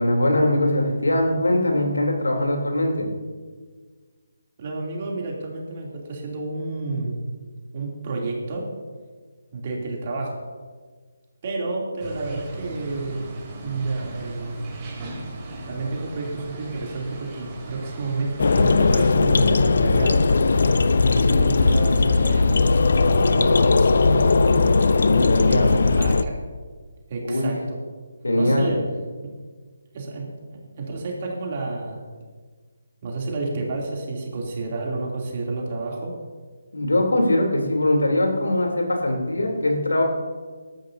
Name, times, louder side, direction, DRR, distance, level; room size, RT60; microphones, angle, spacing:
voice 1, 0.0-3.1 24.9-25.8 27.2-27.5 28.2-28.8 36.7-40.0, left 1 dB, 75° left, 1 dB, 3.4 m, -21 dB
voice 2, 4.6-7.2 7.7-8.7 9.5-10.4 11.4-13.3 13.6-14.6 15.7-20.2 21.1-22.8 23.1-24.9 25.5-26.4 27.1-27.8 28.4-28.8 29.2-29.3 29.9-32.0 33.0-36.2, right 3 dB, 40° right, -2 dB, 3.0 m, -30 dB
sound 1, 12.0-19.1, right 2 dB, 20° right, 3.2 m, -37 dB
sound 2, 18.4-26.2, left 3 dB, 60° left, 0.7 m, -18 dB
19.0 x 13.5 x 2.8 m, 1.5 s
figure-of-eight pair, 150°, 0 cm